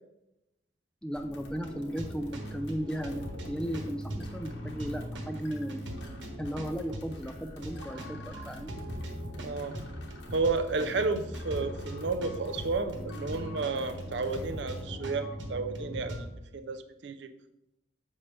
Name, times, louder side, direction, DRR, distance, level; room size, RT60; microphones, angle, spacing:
voice 1, 1.0-5.8 6.4-8.7 11.6-11.7, equal, 5° left, 6 dB, 0.3 m, -36 dB
sound 1, 1.1-14.8, left 1 dB, 80° left, 1.2 m, -48 dB
sound 2, 1.5-16.3, equal, 90° right, 1.3 m, -40 dB
voice 2, 9.4-9.8 10.3-16.2 16.5-17.3, right 3 dB, 75° right, 10 dB, 0.6 m, -32 dB
7.3 x 5.4 x 3.3 m, 0.89 s
head